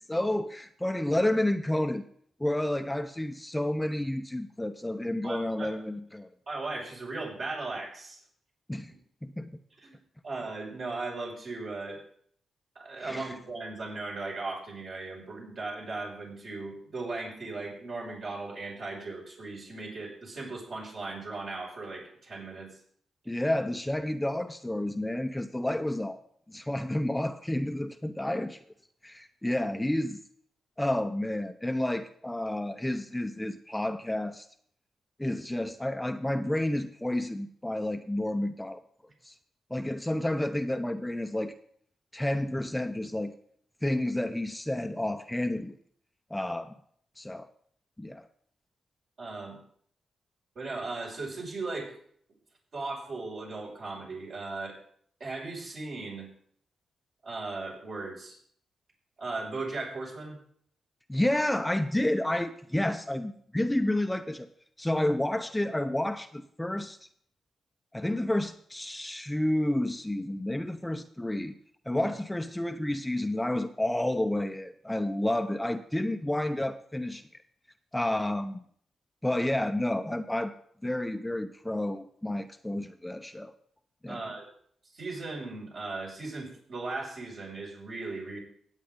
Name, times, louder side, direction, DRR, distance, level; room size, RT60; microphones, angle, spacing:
voice 1, 0.0-2.0 2.4-6.3 8.7-8.9 9.2-9.5 13.0-13.3 23.3-26.2 26.5-28.6 29.0-30.2 30.8-34.5 35.2-38.8 39.2-39.3 39.7-41.5 42.1-43.3 43.8-45.8 46.3-46.7 47.2-47.5 48.0-48.2 61.1-64.5 64.8-67.0 67.9-71.5 71.9-77.3 77.9-78.6 79.2-80.5 80.8-83.5 84.0-84.2, left 1 dB, 10° left, 8 dB, 0.8 m, -30 dB
voice 2, 5.2-5.7 6.5-8.2 9.8-9.9 10.2-12.0 12.7-22.7 49.2-49.6 50.5-52.0 52.7-54.8 55.2-56.3 57.2-58.4 59.2-60.4 71.9-72.1 84.1-84.5 84.9-88.4, right 3 dB, 60° right, -4 dB, 5.9 m, -37 dB
16.5 x 8.4 x 3.8 m, 0.63 s
hypercardioid pair, 40°, 0 cm